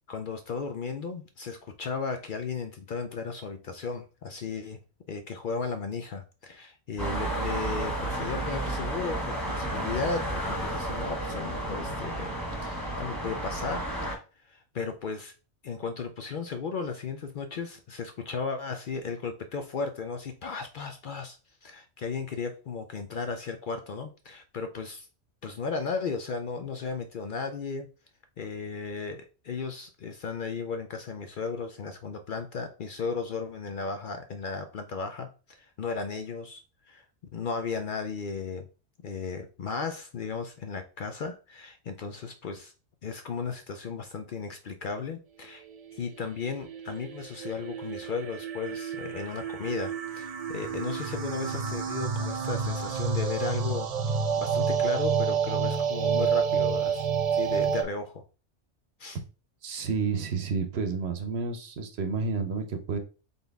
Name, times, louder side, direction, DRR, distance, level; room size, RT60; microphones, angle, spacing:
voice 1, 0.1-4.8 5.1-12.3 12.6-13.9 14.4-15.3 15.6-25.1 25.4-27.9 28.4-37.1 37.3-38.7 39.0-42.7 43.0-45.6 45.9-53.9 54.4-58.2 59.0-59.2, left 5 dB, 60° left, 6 dB, 0.6 m, -35 dB
sound 1, 7.0-14.2, right 1 dB, ahead, 1.6 m, -32 dB
sound 2, 46.4-57.8, right 6 dB, 45° right, 0.5 m, -29 dB
voice 2, 59.6-63.0, right 5 dB, 65° right, 7 dB, 1.0 m, -30 dB
4.0 x 3.7 x 3.4 m, 0.35 s
omnidirectional pair, 1.2 m